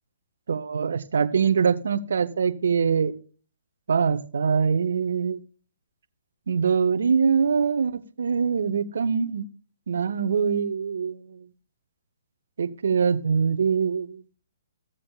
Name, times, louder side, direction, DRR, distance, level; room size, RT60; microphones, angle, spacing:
voice 1, 0.5-3.1 3.9-5.4 6.5-9.4 9.9-11.5 12.6-14.2, right 6 dB, 70° right, 10 dB, 1.0 m, -23 dB
16.0 x 7.5 x 2.4 m, 0.40 s
hypercardioid pair, 135°, 0 cm